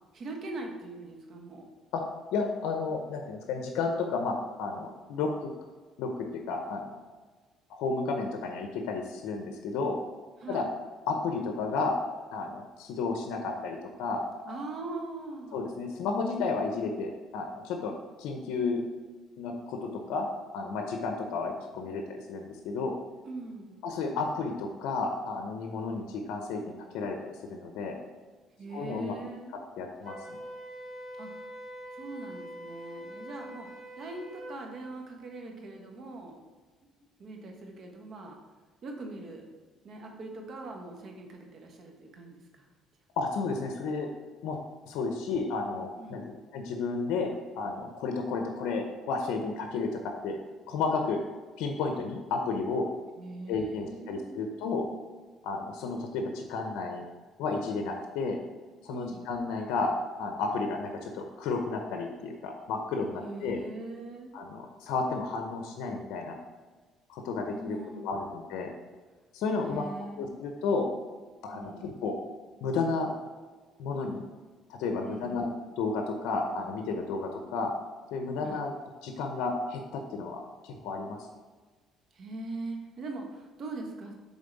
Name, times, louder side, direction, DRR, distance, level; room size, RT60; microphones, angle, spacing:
voice 1, 0.1-1.7 10.4-10.7 14.4-15.6 23.2-23.8 28.6-29.6 31.2-31.3 31.9-33.7 34.0-36.4 37.0-38.4 38.8-39.5 39.8-42.7 46.0-46.3 53.2-54.5 58.9-59.3 63.2-64.3 67.5-68.4 69.6-70.4 71.5-71.9 75.0-75.5 78.4-78.6 82.1-84.1, right 2 dB, 50° right, 2 dB, 1.2 m, -41 dB
voice 2, 2.3-5.5 6.0-6.8 7.7-10.0 10.5-10.7 11.1-12.0 12.3-14.6 15.5-18.8 19.4-20.2 20.5-23.0 23.8-28.0 28.7-29.1 29.8-30.4 43.2-44.1 44.4-44.6 44.9-46.2 46.5-50.4 50.7-51.2 51.6-52.9 53.5-54.9 55.4-57.0 57.4-58.4 58.8-59.9 60.2-63.6 64.3-66.4 67.1-68.7 69.3-69.8 70.2-70.9 71.4-72.2 72.6-73.1 73.8-74.2 74.7-75.5 75.8-77.7 78.1-78.7 79.0-81.2, left 4 dB, 85° left, 3 dB, 0.7 m, -32 dB
Wind instrument woodwind instrument, 30.0-34.6, right 1 dB, 25° right, 1.7 m, -44 dB
7.2 x 3.8 x 4.0 m, 1.4 s
cardioid pair, 110°, 0 cm